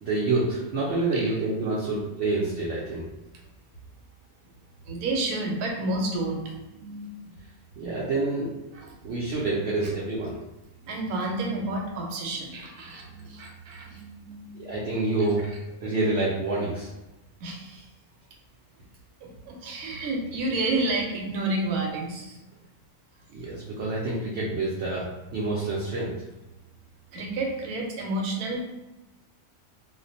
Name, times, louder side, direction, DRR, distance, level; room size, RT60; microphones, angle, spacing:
voice 1, 0.0-3.1 7.8-8.5 9.0-10.4 14.5-15.5 15.8-16.9 23.3-26.1, right 2 dB, 65° right, -6 dB, 0.7 m, -27 dB
voice 2, 4.8-7.1 8.7-9.0 9.2-9.4 9.8-9.9 10.8-15.0 15.5-15.6 17.4-17.9 19.2-22.4 23.3-23.4 27.1-28.6, right 2 dB, 90° right, 1 dB, 1.1 m, -31 dB
2.4 x 2.1 x 2.6 m, 1.0 s
omnidirectional pair, 1.6 m